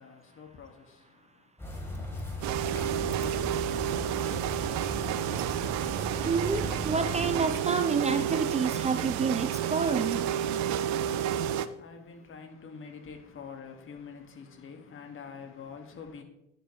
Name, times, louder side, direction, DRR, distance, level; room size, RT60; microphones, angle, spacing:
voice 1, 0.0-1.5 11.3-16.2, left 6 dB, 40° left, 1.9 m, -46 dB
sound 1, 1.6-7.4, equal, 5° left, 3.9 m, -38 dB
sound 2, 2.4-11.7, right 10 dB, 55° right, 0.7 m, -30 dB
voice 2, 6.3-10.3, right 5 dB, 20° right, 0.6 m, -29 dB
10.5 x 10.0 x 3.2 m
figure-of-eight pair, 50°, 33 cm